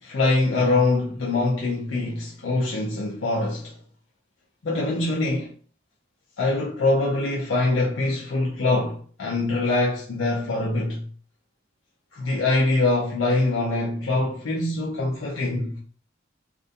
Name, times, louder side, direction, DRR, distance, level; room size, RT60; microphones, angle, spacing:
voice 1, 0.0-3.8 4.6-5.5 6.4-11.1 12.1-15.8, left 2 dB, 80° left, 0.6 m, -24 dB
2.4 x 2.1 x 2.6 m
head